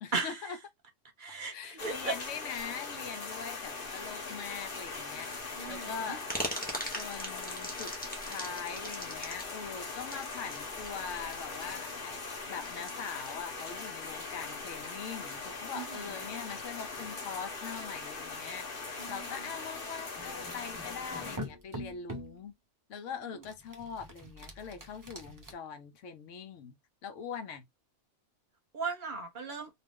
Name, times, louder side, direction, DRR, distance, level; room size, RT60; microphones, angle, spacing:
voice 1, 0.0-0.6 1.5-6.2 6.9-7.9 8.3-12.2 12.5-22.5 22.9-26.8 27.0-27.7, left 6 dB, 85° left, 1.0 m, -42 dB
voice 2, 1.2-1.5 1.8-2.1 5.6-5.9 15.7-15.8 19.0-19.2 28.7-29.7, right 4 dB, 50° right, 0.8 m, -35 dB
sound 1, 1.8-21.4, left 4 dB, 50° left, 1.1 m, -41 dB
sound 2, 6.3-13.3, equal, 10° left, 0.6 m, -40 dB
sound 3, 20.2-22.4 23.4-25.5, equal, 30° right, 0.4 m, -44 dB
2.4 x 2.4 x 3.5 m
omnidirectional pair, 1.3 m